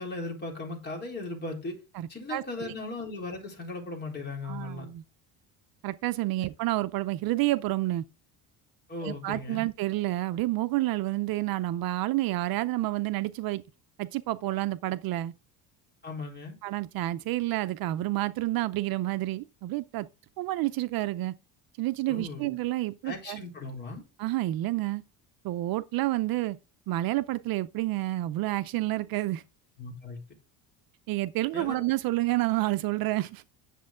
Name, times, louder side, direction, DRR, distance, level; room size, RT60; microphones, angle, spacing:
voice 1, 0.0-1.8 2.1-4.9 8.9-9.7 16.0-16.6 22.1-22.5 23.0-24.0 29.8-30.2 31.5-31.8, left 2 dB, 25° left, 3.9 m, -37 dB
voice 2, 1.9-2.7 4.4-5.0 5.8-8.0 9.0-13.6 14.0-15.3 16.6-20.1 20.4-21.3 21.8-23.4 24.2-25.0 25.4-26.6 26.9-29.4 31.1-33.4, right 17 dB, 60° right, 0.6 m, -29 dB
10.0 x 7.4 x 3.7 m
cardioid pair, 135°, 41 cm